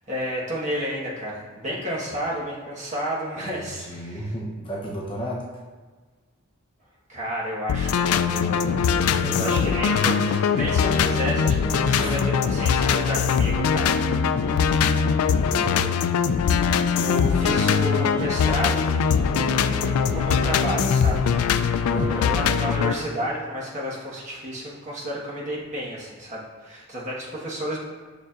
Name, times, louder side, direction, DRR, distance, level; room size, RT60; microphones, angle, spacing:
voice 1, 0.1-4.2 7.1-8.8 9.3-12.2 12.5-14.0 14.4-15.0 15.4-16.0 16.7-21.3 21.8-27.8, equal, 35° right, -5 dB, 1.3 m, -31 dB
voice 2, 3.4-5.5 9.0-9.5 12.0-12.2 12.5-12.6 15.5-15.7 21.9-22.3, equal, 25° left, -4 dB, 0.7 m, -33 dB
sound 1, 7.7-22.9, left 7 dB, 90° left, 0.3 m, -22 dB
sound 2, 8.8-15.8 16.4-23.6, equal, 60° left, 1.1 m, -34 dB
6.8 x 6.4 x 2.5 m, 1.4 s
head